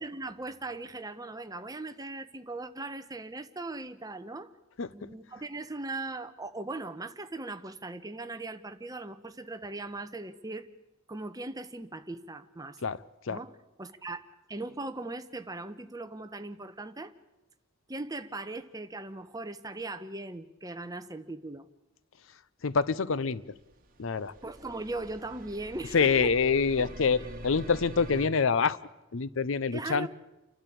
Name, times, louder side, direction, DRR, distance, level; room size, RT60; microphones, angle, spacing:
voice 1, 0.0-4.5 4.9-10.7 11.1-12.8 13.3-13.5 13.8-17.1 17.9-21.7 24.4-26.3 26.8-26.9 29.7-30.1, right 2 dB, 20° right, 9 dB, 1.0 m, -39 dB
voice 2, 4.8-5.1 12.8-13.4 22.6-23.4 24.0-24.3 25.9-28.8 29.1-30.1, left 5 dB, 65° left, 18 dB, 0.6 m, -26 dB
sound 1, 23.5-28.3, right 1 dB, 45° right, 2.0 m, -45 dB
29.5 x 12.0 x 8.6 m, 1.0 s
head